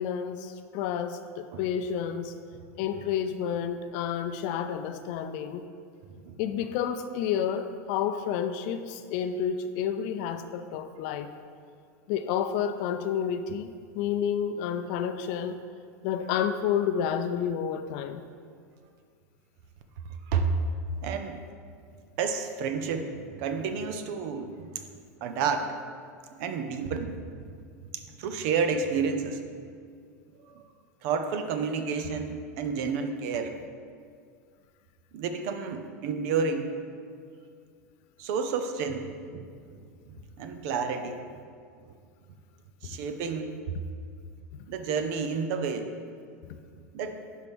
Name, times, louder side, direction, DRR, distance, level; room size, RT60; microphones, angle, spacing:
voice 1, 0.0-2.3 2.8-5.7 6.4-11.3 12.1-15.6 16.0-18.2 46.5-46.6, left 8 dB, 60° left, 9 dB, 0.5 m, -30 dB
voice 2, 6.1-6.4 20.3-20.5 21.0-21.4 22.2-24.8 25.2-25.8 26.4-27.5 27.9-29.4 30.5-30.7 31.0-33.5 35.1-36.7 38.2-39.5 40.1-41.2 42.8-43.5 44.7-45.9 46.9-47.2, right 5 dB, 60° right, 8 dB, 0.7 m, -30 dB
10.5 x 4.7 x 3.5 m, 2.2 s
hypercardioid pair, 105°, 9 cm